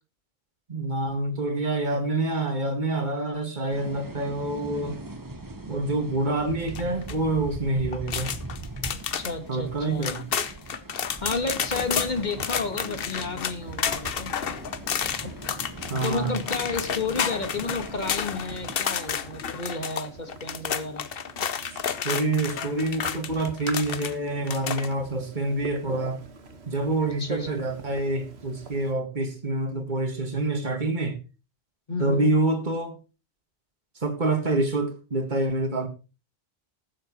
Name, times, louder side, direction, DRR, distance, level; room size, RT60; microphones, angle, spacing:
voice 1, 0.7-5.0 5.7-8.3 9.5-10.3 15.9-16.4 21.7-26.2 26.7-31.2 32.0-33.0 34.0-35.9, right 2 dB, 45° right, 2.1 m, -27 dB
sound 1, 3.7-18.8, right 2 dB, 20° right, 1.1 m, -40 dB
sound 2, 6.7-7.1 7.9-9.3 9.7-9.8 10.0-24.1 24.4-24.9, left 7 dB, 60° left, 1.0 m, -31 dB
voice 2, 8.9-10.2 11.2-14.3 15.2-15.3 16.0-21.1 27.0-27.5 31.9-32.3, left 3 dB, 40° left, 1.7 m, -31 dB
sound 3, 11.3-28.9, right 4 dB, 70° right, 1.7 m, -45 dB
20.0 x 7.5 x 3.0 m
omnidirectional pair, 1.1 m